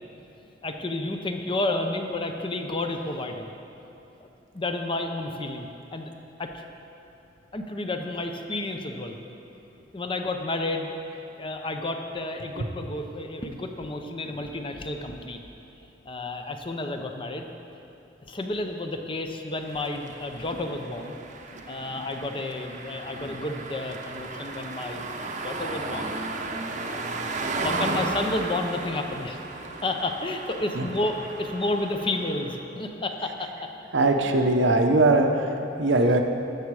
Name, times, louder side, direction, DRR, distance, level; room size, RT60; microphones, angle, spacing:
voice 1, 0.6-3.5 4.2-4.3 4.5-6.1 6.4-6.6 7.5-9.2 9.9-10.9 11.3-15.4 16.1-17.5 18.3-21.2 21.5-25.1 25.4-26.1 26.9-27.1 27.6-29.4 29.8-33.7, left 2 dB, 30° left, 5 dB, 0.6 m, -31 dB
sound 1, 19.6-32.6, right 3 dB, 40° right, 0.7 m, -34 dB
voice 2, 33.9-35.5 35.8-36.2, right 2 dB, 75° right, 4 dB, 0.8 m, -20 dB
13.0 x 7.1 x 4.8 m, 2.9 s
head